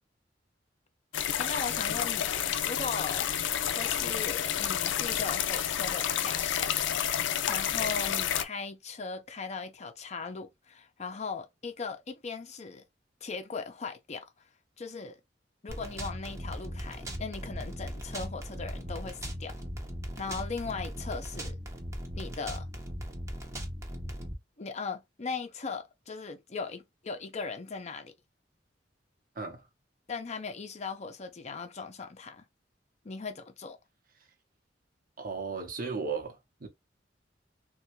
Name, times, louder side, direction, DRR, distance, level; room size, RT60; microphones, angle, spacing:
sound 1, 1.1-8.4, left 10 dB, 90° left, 0.4 m, -30 dB
voice 1, 1.4-3.3 3.7-7.0 7.5-12.8 13.2-14.3 14.8-15.2 15.6-19.5 20.2-21.6 22.1-22.7 24.6-28.1 30.1-32.4 33.0-33.8, left 4 dB, 40° left, 0.6 m, -38 dB
sound 2, 15.7-24.3, equal, 15° right, 0.7 m, -38 dB
voice 2, 29.3-29.7 35.2-36.7, right 4 dB, 50° right, 0.8 m, -35 dB
3.3 x 2.3 x 3.0 m
head